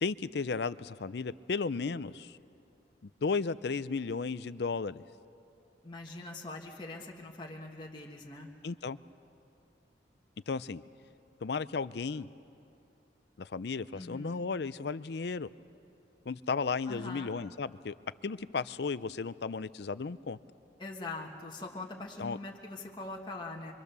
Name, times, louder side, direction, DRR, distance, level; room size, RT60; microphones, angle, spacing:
voice 1, 0.0-2.4 3.2-5.0 8.6-9.0 10.5-10.8 11.4-12.3 13.4-15.5 16.3-17.9 18.2-20.4 22.2-22.4, left 4 dB, 65° left, 16 dB, 0.5 m, -34 dB
voice 2, 5.8-8.5 13.9-14.4 16.9-17.3 20.8-23.7, left 2 dB, 25° left, -1 dB, 1.5 m, -42 dB
25.5 x 24.5 x 6.8 m, 2.6 s
head